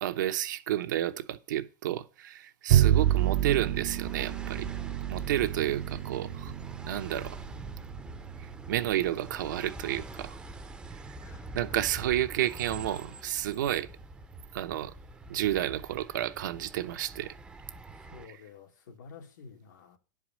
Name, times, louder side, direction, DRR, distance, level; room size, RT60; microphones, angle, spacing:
voice 1, 0.0-4.7 5.1-6.5 6.8-7.4 8.7-10.4 10.9-11.0 11.5-13.9 14.5-14.9 15.3-17.3 18.2-18.4, right 12 dB, 85° right, 0.9 m, -31 dB
sound 1, 2.7-18.3, right 2 dB, 10° right, 0.6 m, -45 dB
Bowed string instrument, 2.7-9.2, right 12 dB, 60° right, 0.6 m, -29 dB
voice 2, 11.2-11.5 18.0-20.0, left 5 dB, 80° left, 1.9 m, -50 dB
10.5 x 4.8 x 7.4 m
supercardioid pair, 155°, 10 cm